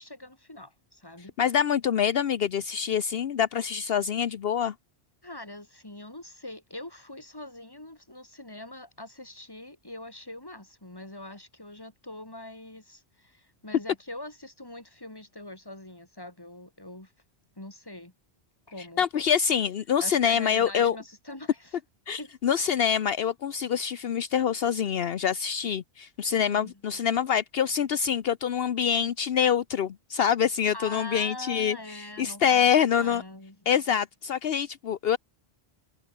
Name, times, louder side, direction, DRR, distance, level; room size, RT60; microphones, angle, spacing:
voice 1, 0.0-1.3 5.2-17.1 17.6-18.1 18.7-19.0 20.0-21.8 22.1-22.3 26.5-27.2 30.7-33.7, left 1 dB, 20° left, 3.0 m, -43 dB
voice 2, 1.4-4.7 19.0-21.0 22.1-31.8 32.2-33.2 33.7-35.2, left 8 dB, 70° left, 1.0 m, -25 dB
omnidirectional pair, 1.1 m